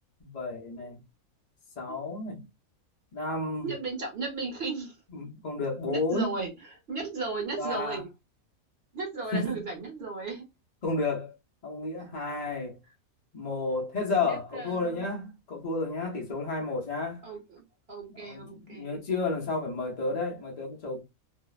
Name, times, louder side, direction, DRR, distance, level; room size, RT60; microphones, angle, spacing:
voice 1, 0.2-1.0 1.8-2.4 3.1-3.7 5.1-6.3 7.6-8.0 9.3-9.6 10.8-11.3 11.6-12.8 13.3-17.2 18.2-21.0, left 3 dB, 50° left, 0.4 m, -31 dB
voice 2, 3.6-5.0 5.9-8.1 8.9-10.4 12.0-12.1 14.2-15.1 17.2-19.0, right 3 dB, 50° right, 1.0 m, -35 dB
2.6 x 2.0 x 2.3 m
omnidirectional pair, 1.5 m